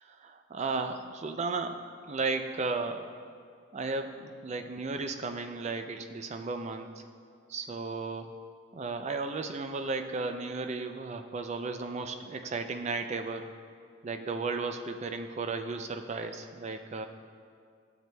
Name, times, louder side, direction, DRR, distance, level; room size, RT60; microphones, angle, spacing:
voice 1, 0.0-1.8 2.1-3.1 3.7-7.0 7.5-8.3 8.7-13.5 14.0-17.0, right 3 dB, 30° right, 7 dB, 0.4 m, -34 dB
12.0 x 7.6 x 2.2 m, 2.2 s
head